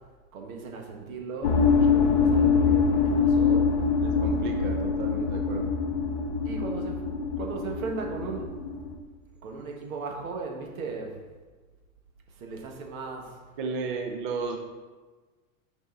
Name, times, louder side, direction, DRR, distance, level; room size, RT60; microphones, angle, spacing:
voice 1, 0.3-3.7 6.4-7.0 7.4-8.5 9.4-11.2 12.4-13.3, right 4 dB, 85° right, 1 dB, 1.6 m, -37 dB
sound 1, 1.4-9.0, left 5 dB, 35° left, 0.4 m, -24 dB
voice 2, 4.0-5.7 13.6-14.6, right 4 dB, 40° right, 3 dB, 0.5 m, -34 dB
5.8 x 5.4 x 3.9 m, 1.3 s
supercardioid pair, 170°, 41 cm